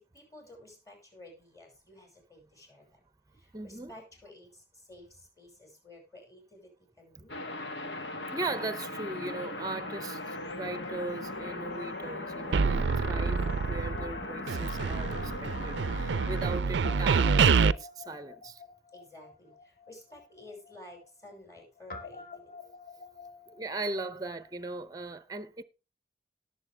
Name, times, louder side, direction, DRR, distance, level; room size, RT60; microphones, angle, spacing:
voice 1, 0.0-3.0 3.3-7.4 18.9-22.4, left 1 dB, 20° left, 5.7 m, -52 dB
voice 2, 3.5-3.9 8.3-18.6 23.5-25.6, right 2 dB, 20° right, 0.7 m, -38 dB
sound 1, 7.3-16.6, left 2 dB, 85° left, 1.9 m, -38 dB
sound 2, 12.5-14.2 14.5-17.7, right 5 dB, 90° right, 0.5 m, -26 dB
Guitar, 13.2-15.6 15.9-16.0 16.8-24.7, left 3 dB, 55° left, 2.3 m, -49 dB
18.0 x 7.3 x 3.4 m
head